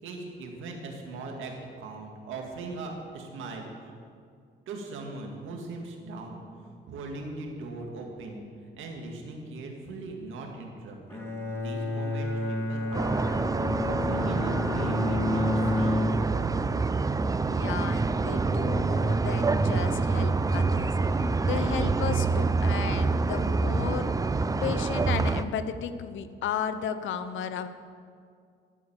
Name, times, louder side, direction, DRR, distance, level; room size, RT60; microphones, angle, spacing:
voice 1, 0.0-3.9 4.7-6.4 6.9-13.5 13.8-16.0, right 3 dB, 80° right, 1 dB, 2.1 m, -40 dB
Bowed string instrument, 11.1-16.6, left 1 dB, 10° left, 2.2 m, -30 dB
sound 1, 12.9-25.4, right 3 dB, 20° right, 0.5 m, -26 dB
voice 2, 17.4-20.9 21.4-24.1 24.6-27.7, left 8 dB, 75° left, 10 dB, 0.8 m, -34 dB
13.0 x 6.8 x 7.3 m, 2.2 s
cardioid pair, 90°, 20 cm